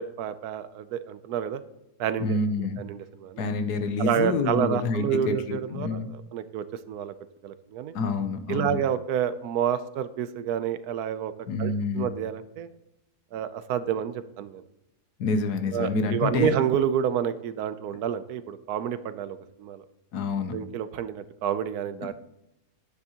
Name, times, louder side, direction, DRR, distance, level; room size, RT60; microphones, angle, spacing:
voice 1, 0.0-1.6 2.0-2.4 2.8-3.4 4.0-7.1 7.4-8.0 8.5-11.3 11.6-12.7 13.3-14.6 15.7-19.8 20.5-22.1, right 9 dB, 80° right, 13 dB, 1.1 m, -29 dB
voice 2, 2.2-2.8 3.4-6.1 7.9-8.8 11.5-12.1 15.2-16.5 20.1-20.6, left 3 dB, 85° left, 9 dB, 1.4 m, -27 dB
9.6 x 9.4 x 2.9 m, 0.87 s
omnidirectional pair, 1.6 m